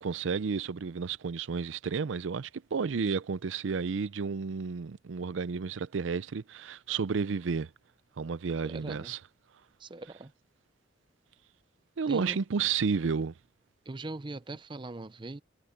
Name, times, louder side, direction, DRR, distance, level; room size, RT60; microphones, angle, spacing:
voice 1, 0.0-7.7 8.2-9.2 12.0-13.3, right 5 dB, 80° right, 0.5 m, -31 dB
voice 2, 8.6-9.2 9.8-10.3 12.1-12.4 13.9-15.4, right 2 dB, 25° right, 0.6 m, -40 dB
head